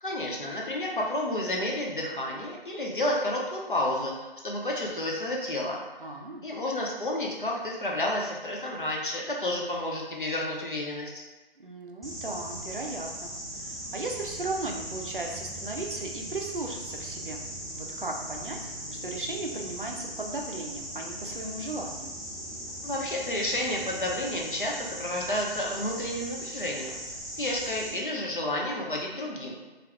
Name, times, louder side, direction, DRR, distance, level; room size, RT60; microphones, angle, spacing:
voice 1, 0.0-5.8 6.4-11.2 22.8-26.9 27.4-29.6, left 1 dB, 55° left, -1 dB, 0.6 m, -31 dB
voice 2, 6.0-6.5 11.6-17.4 17.8-18.7 19.0-22.2, right 2 dB, 55° right, 1 dB, 0.5 m, -36 dB
sound 1, 12.0-27.9, right 1 dB, ahead, 0.3 m, -39 dB
2.6 x 2.4 x 3.3 m, 1.2 s
figure-of-eight pair, 165°, 31 cm